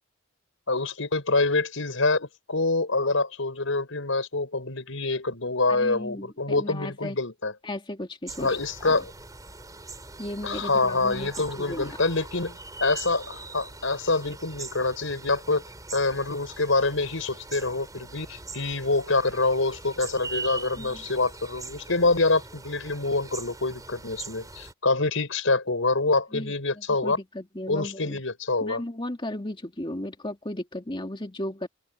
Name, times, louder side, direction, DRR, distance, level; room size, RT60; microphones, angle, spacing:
voice 1, 0.7-7.5 8.4-9.1 10.4-15.6 15.9-27.2 27.7-28.8, left 3 dB, 90° left, 4.7 m, -26 dB
voice 2, 5.7-7.2 7.6-9.0 10.2-11.3 11.6-12.0 20.8-21.0 26.3-28.2 28.6-31.7, left 1 dB, 25° left, 2.4 m, -35 dB
sound 1, 8.3-24.7, right 3 dB, 20° right, 6.0 m, -42 dB
open air
head